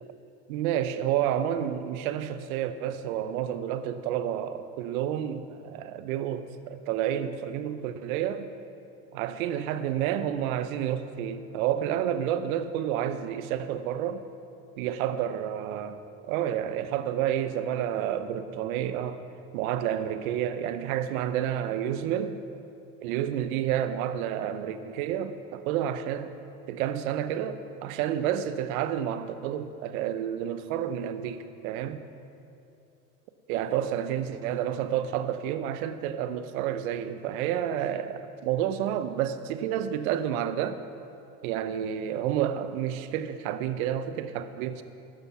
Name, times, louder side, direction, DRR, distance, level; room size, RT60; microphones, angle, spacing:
voice 1, 0.5-8.5 9.1-14.2 14.8-19.2 19.5-22.4 23.0-26.3 26.7-32.0 33.5-40.8 41.4-44.8, right 10 dB, 75° right, 12 dB, 0.8 m, -30 dB
12.5 x 10.0 x 5.6 m, 2.7 s
hypercardioid pair, 75°, 43 cm